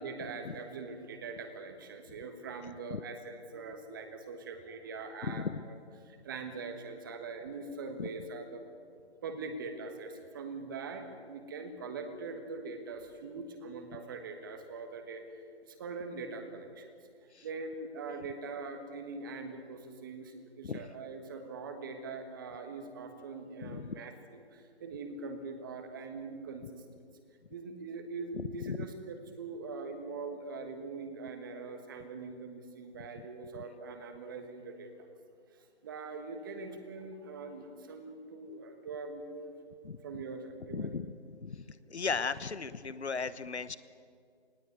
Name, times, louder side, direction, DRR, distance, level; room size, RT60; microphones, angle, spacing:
voice 1, 0.0-5.7 6.0-8.6 9.2-15.2 15.6-16.9 17.4-26.8 27.5-34.9 35.5-39.5 40.0-40.9, right 4 dB, 20° right, 7 dB, 1.5 m, -42 dB
voice 2, 5.2-5.6 8.0-8.1 17.3-17.5 20.6-20.8 23.6-24.0 28.3-28.8 39.8-40.0 40.7-41.1 41.4-43.8, left 5 dB, 75° left, 15 dB, 1.2 m, -36 dB
19.5 x 17.5 x 9.5 m, 2.2 s
figure-of-eight pair, 160°, 33 cm